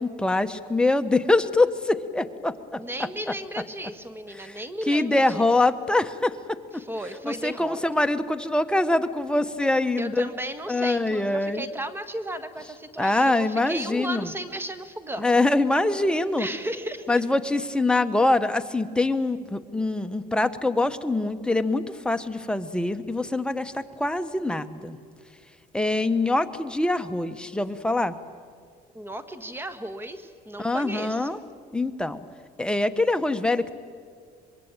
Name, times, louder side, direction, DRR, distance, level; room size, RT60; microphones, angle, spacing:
voice 1, 0.0-2.8 4.4-4.5 4.9-6.8 7.2-10.3 10.7-11.6 13.0-14.3 15.2-16.5 17.1-25.0 25.7-28.1 30.6-31.4 31.7-32.2 32.6-33.7, left 2 dB, 5° left, 8 dB, 1.1 m, -24 dB
voice 2, 2.7-5.4 6.7-7.8 10.0-15.3 16.4-17.1 28.9-31.4, right 1 dB, 15° right, 10 dB, 1.5 m, -35 dB
25.0 x 22.0 x 9.0 m, 2.1 s
cardioid pair, 110°, 17 cm